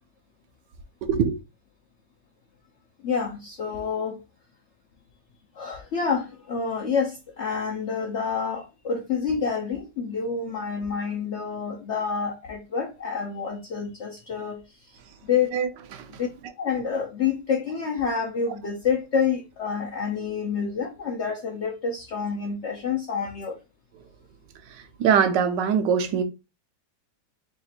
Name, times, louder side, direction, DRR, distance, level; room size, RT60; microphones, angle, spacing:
voice 1, 1.0-1.3 15.5-16.1 24.7-26.2, right 7 dB, 90° right, 1.3 m, -23 dB
voice 2, 3.0-4.2 5.6-14.6 15.2-15.5 16.2-16.3 16.6-23.6, left 6 dB, 65° left, 0.7 m, -28 dB
3.5 x 2.4 x 4.1 m
omnidirectional pair, 1.9 m